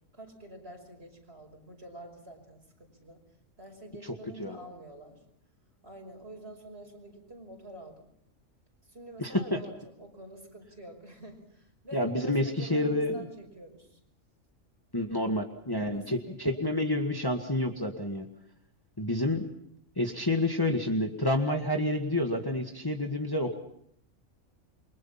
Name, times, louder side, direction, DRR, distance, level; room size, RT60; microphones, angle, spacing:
voice 1, 0.1-3.2 3.6-5.2 5.8-8.1 8.8-14.0 15.7-16.6, right 1 dB, 50° right, 3 dB, 5.7 m, -47 dB
voice 2, 9.2-9.6 11.9-13.2 14.9-18.3 19.0-19.4 20.0-23.5, left 1 dB, 15° left, 3 dB, 1.8 m, -29 dB
28.5 x 24.0 x 5.8 m, 0.70 s
omnidirectional pair, 1.4 m